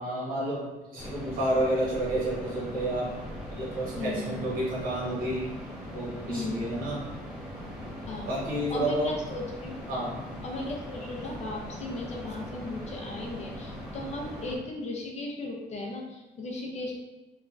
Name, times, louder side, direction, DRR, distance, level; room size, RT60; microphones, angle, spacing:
voice 1, 0.0-3.2 3.6-5.5 5.9-7.0 8.3-9.1 9.9-10.2, right 1 dB, 55° right, -5 dB, 1.1 m, -30 dB
sound 1, 1.0-14.6, equal, 5° right, 0.7 m, -40 dB
voice 2, 3.9-4.3 6.3-6.7 8.1-8.4 8.7-9.8 10.4-17.0, left 2 dB, 40° left, 0 dB, 0.5 m, -36 dB
3.0 x 2.3 x 2.4 m, 1.1 s
cardioid pair, 110°, 17 cm